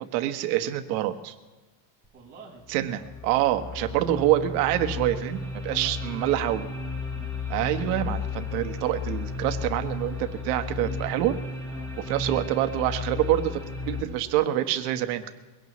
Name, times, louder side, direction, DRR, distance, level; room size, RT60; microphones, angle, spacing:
voice 1, 0.1-1.3 2.7-6.6 7.5-11.3 12.1-15.3, right 13 dB, 75° right, 8 dB, 1.3 m, -26 dB
sound 1, 2.0-2.1 2.7-14.0, left 4 dB, 5° left, 1.6 m, -34 dB
voice 2, 2.1-2.6 5.7-7.3 11.7-11.9, right 4 dB, 20° right, -7 dB, 4.5 m, -49 dB
22.5 x 17.0 x 3.1 m, 1.2 s
cardioid pair, 170°, 48 cm